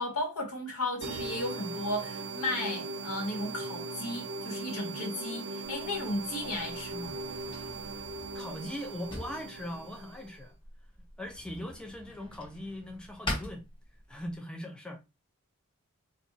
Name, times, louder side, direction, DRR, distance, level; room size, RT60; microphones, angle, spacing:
voice 1, 0.0-7.2, left 1 dB, 80° left, 1.3 m, -35 dB
sound 1, 1.0-10.4, right 3 dB, 55° right, 0.5 m, -39 dB
Drawer open or close, 5.6-14.4, left 1 dB, 20° left, 0.9 m, -44 dB
voice 2, 8.3-10.6 11.2-13.7 14.1-15.0, left 1 dB, 5° left, 0.4 m, -40 dB
2.6 x 2.3 x 3.9 m
head